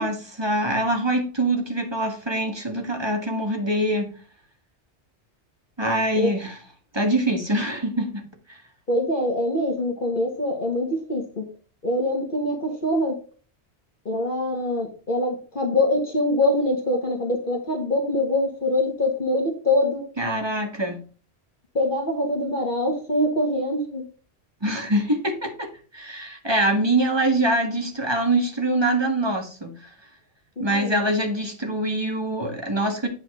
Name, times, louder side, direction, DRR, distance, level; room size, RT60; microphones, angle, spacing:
voice 1, 0.0-4.1 5.8-6.6 6.9-8.6 20.2-21.0 24.6-25.7 25.9-29.8 30.6-33.1, right 1 dB, 25° right, 1.7 m, -24 dB
voice 2, 8.9-11.5 11.8-13.2 14.1-20.0 21.8-24.0 30.6-31.0, left 1 dB, 50° left, 1.8 m, -24 dB
9.2 x 5.7 x 3.7 m
omnidirectional pair, 1.1 m